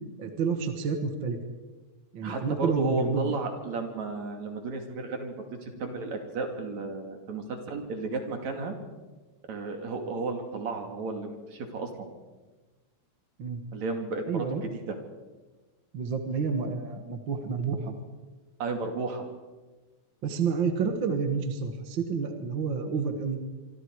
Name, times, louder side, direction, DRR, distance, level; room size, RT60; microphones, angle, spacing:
voice 1, 0.2-1.4 2.1-3.3 13.4-13.6 14.3-14.6 15.9-17.9 20.2-23.4, right 5 dB, 45° right, 6 dB, 2.1 m, -29 dB
voice 2, 2.2-8.7 9.5-12.1 13.7-14.5 14.7-15.0 18.6-19.2, right 3 dB, 65° right, 4 dB, 3.8 m, -33 dB
26.5 x 24.5 x 4.8 m, 1.2 s
omnidirectional pair, 3.4 m